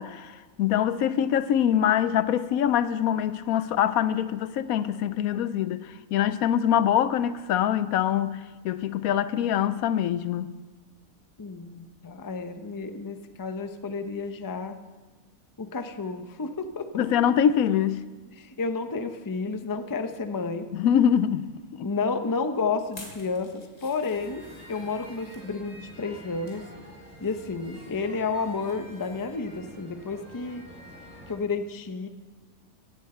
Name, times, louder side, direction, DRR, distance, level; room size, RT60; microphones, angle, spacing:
voice 1, 0.0-10.5 16.9-18.0 20.7-21.5 21.8-21.9, left 9 dB, 75° left, 1.0 m, -24 dB
voice 2, 11.4-14.8 15.6-17.1 18.4-20.7 21.8-26.6 27.2-30.6 31.3-32.1, left 4 dB, 25° left, 0.5 m, -31 dB
sound 1, 22.9-25.5 26.1-26.6 27.0-28.7 29.0-29.2 29.6-29.7, left 2 dB, 60° left, 3.1 m, -51 dB
sound 2, 24.1-31.3, equal, 5° right, 4.0 m, -48 dB
15.5 x 11.5 x 4.3 m
omnidirectional pair, 1.5 m